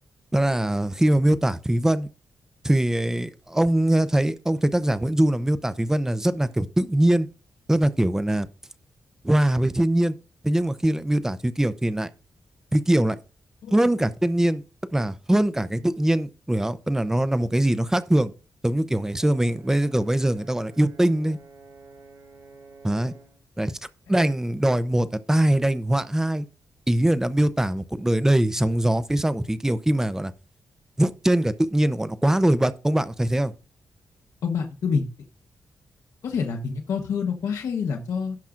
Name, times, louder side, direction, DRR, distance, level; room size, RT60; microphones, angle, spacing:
voice 1, 0.3-2.1 2.6-7.3 7.7-8.5 9.2-10.1 10.4-12.1 12.7-13.2 13.7-14.6 14.9-18.3 18.6-21.4 22.8-23.1 23.6-23.8 24.1-26.5 26.9-30.3 31.0-33.5, right 1 dB, 10° right, 0.6 m, -22 dB
Brass instrument, 19.2-23.4, right 3 dB, 90° right, 4.7 m, -50 dB
voice 2, 34.4-35.1 36.2-38.4, left 6 dB, 80° left, 1.1 m, -27 dB
16.5 x 5.8 x 2.5 m
cardioid pair, 110°, 5 cm